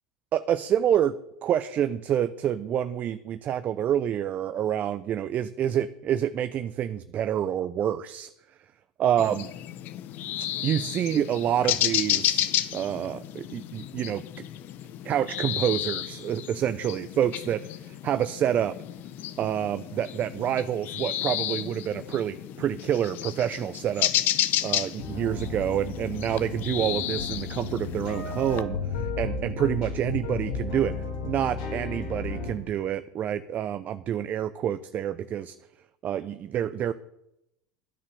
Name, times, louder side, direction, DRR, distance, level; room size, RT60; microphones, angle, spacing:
voice 1, 0.3-1.1 1.4-8.3 9.0-9.5 10.6-12.5 12.7-14.2 15.0-17.6 18.0-18.7 19.4-24.1 24.6-30.9 31.2-35.5 36.0-36.9, right 10 dB, 40° right, 12 dB, 0.6 m, -27 dB
sound 1, 9.2-28.6, left 12 dB, 50° left, 1.0 m, -32 dB
sound 2, 25.0-32.5, left 4 dB, 75° left, 4.1 m, -33 dB
11.5 x 9.8 x 6.8 m, 0.84 s
hypercardioid pair, 85°, 4 cm